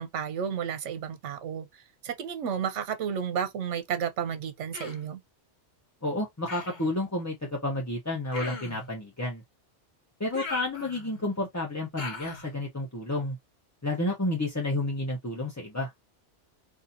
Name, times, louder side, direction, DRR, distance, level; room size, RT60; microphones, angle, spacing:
voice 1, 0.0-5.2, right 8 dB, 75° right, 1.0 m, -32 dB
Human voice, 4.7-5.1 6.5-6.9 8.3-8.9 10.3-11.2 12.0-12.5, left 3 dB, 45° left, 1.0 m, -39 dB
voice 2, 6.0-9.4 10.2-13.4 13.8-15.9, left 2 dB, 15° left, 0.7 m, -30 dB
4.2 x 2.7 x 2.6 m
omnidirectional pair, 1.2 m